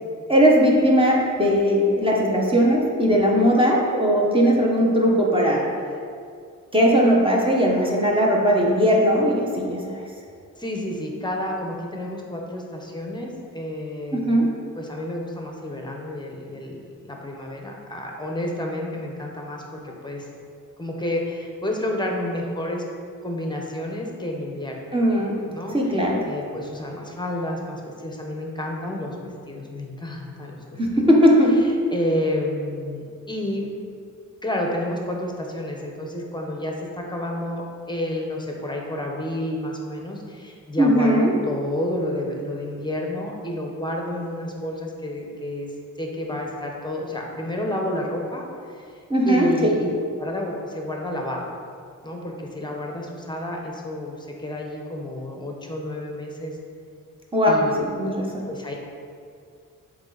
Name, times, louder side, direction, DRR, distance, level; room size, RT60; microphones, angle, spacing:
voice 1, 0.3-5.7 6.7-10.0 14.2-14.5 24.9-25.4 25.7-26.2 30.8-31.6 40.8-41.3 49.1-49.5 57.3-57.6 58.0-58.4, equal, 15° right, -3 dB, 1.1 m, -18 dB
voice 2, 10.6-14.5 14.7-20.2 20.8-22.8 23.2-24.8 25.4-31.0 31.9-33.7 34.4-45.7 46.0-48.4 48.7-48.8 49.2-49.9 50.2-51.5 52.0-56.6 57.5-57.7 58.0-58.7, left 1 dB, 15° left, 0 dB, 0.9 m, -30 dB
7.8 x 3.3 x 4.0 m, 2.3 s
wide cardioid pair, 95°, 34 cm